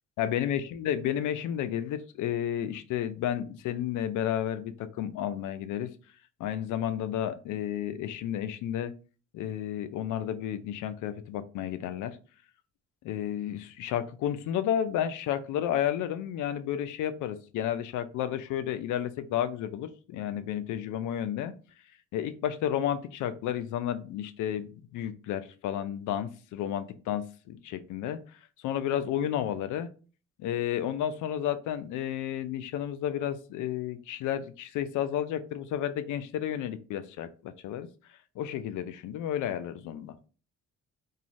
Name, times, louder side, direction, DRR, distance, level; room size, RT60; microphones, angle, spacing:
voice 1, 0.2-5.9 6.4-8.9 9.3-12.2 13.0-21.5 22.1-28.2 28.6-29.9 30.4-37.9 38.4-40.1, left 10 dB, 80° left, 11 dB, 0.5 m, -32 dB
2.5 x 2.3 x 3.0 m, 0.36 s
cardioid pair, 90°, 30 cm